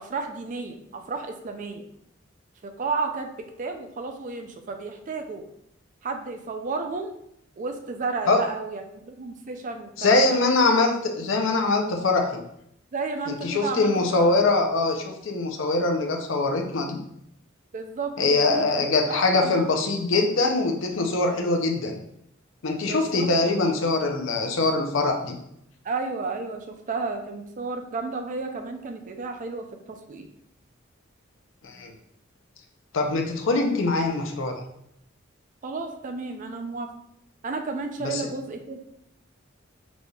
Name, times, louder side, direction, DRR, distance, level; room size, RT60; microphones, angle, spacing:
voice 1, 0.0-1.8 2.6-3.3 3.6-5.4 6.0-7.1 7.6-10.4 12.9-14.3 17.7-19.7 22.9-23.3 23.6-23.7 25.8-30.3 35.6-36.9 37.4-38.8, right 4 dB, 40° right, 5 dB, 0.4 m, -32 dB
voice 2, 10.0-12.4 13.3-17.0 18.2-22.0 22.6-25.4 31.6-31.9 32.9-34.6 38.0-38.2, left 3 dB, 70° left, 3 dB, 0.5 m, -23 dB
4.0 x 3.2 x 2.3 m, 0.75 s
head